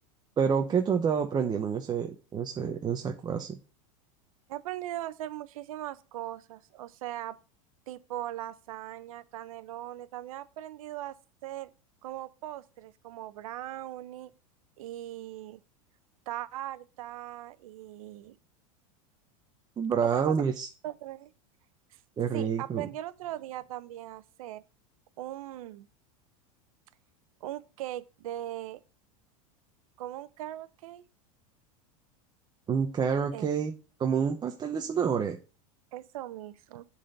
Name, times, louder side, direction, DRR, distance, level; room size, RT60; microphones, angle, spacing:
voice 1, 0.4-3.6 19.8-20.7 22.2-22.9 32.7-33.7 34.0-35.4, right 7 dB, 25° right, 0.8 m, -28 dB
voice 2, 4.5-7.4 7.9-11.2 11.4-11.7 12.0-14.3 14.8-15.6 16.3-18.4 20.0-20.3 20.8-21.3 22.3-24.6 25.2-25.9 27.4-28.8 30.0-31.0 33.3-33.5 35.9-36.9, right 14 dB, 80° right, 0.7 m, -39 dB
7.3 x 4.3 x 6.6 m
supercardioid pair, 125°, 18 cm